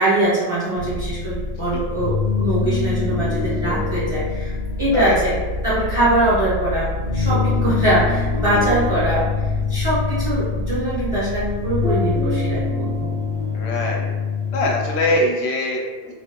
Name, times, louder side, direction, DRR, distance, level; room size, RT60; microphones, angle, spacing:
voice 1, 0.0-4.5 4.8-5.4 5.6-13.1, right 1 dB, 35° right, -9 dB, 0.5 m, -22 dB
sound 1, 0.8-13.6, left 1 dB, 55° left, 0.5 m, -29 dB
sound 2, 1.9-15.2, left 5 dB, 65° right, 1.0 m, -25 dB
voice 2, 13.5-14.1 14.5-16.1, left 1 dB, 75° left, 0 dB, 0.9 m, -22 dB
3.2 x 2.2 x 2.9 m, 1.3 s
omnidirectional pair, 1.2 m